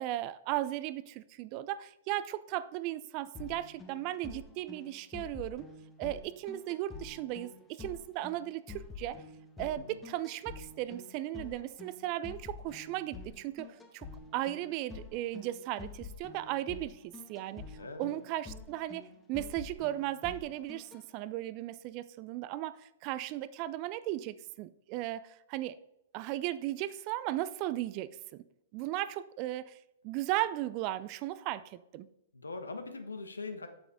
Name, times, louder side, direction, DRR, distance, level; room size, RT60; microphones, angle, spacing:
voice 1, 0.0-5.7 6.0-9.2 9.6-14.1 14.3-25.8 26.1-28.4 28.7-29.8 30.0-32.1, right 14 dB, 35° right, 16 dB, 0.4 m, -36 dB
sound 1, 3.3-21.0, left 4 dB, 15° left, 1.1 m, -48 dB
voice 2, 17.8-18.1 32.3-33.7, left 3 dB, 80° left, 8 dB, 1.1 m, -41 dB
7.9 x 7.1 x 3.7 m, 0.81 s
figure-of-eight pair, 110°, 0 cm